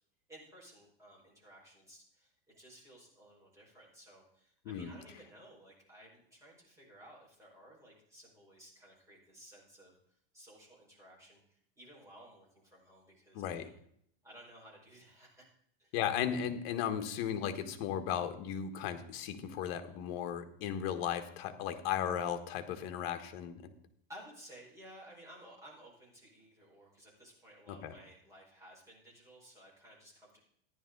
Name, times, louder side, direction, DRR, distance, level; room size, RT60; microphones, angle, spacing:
voice 1, 0.3-10.0 10.3-13.8 14.2-15.5 15.8-15.9 24.1-30.4, equal, 10° right, -4 dB, 5.1 m, -56 dB
voice 2, 13.3-13.7 15.9-23.6 27.7-27.9, left 9 dB, 50° left, 8 dB, 1.5 m, -36 dB
14.0 x 11.0 x 3.9 m, 0.67 s
supercardioid pair, 150°, 30 cm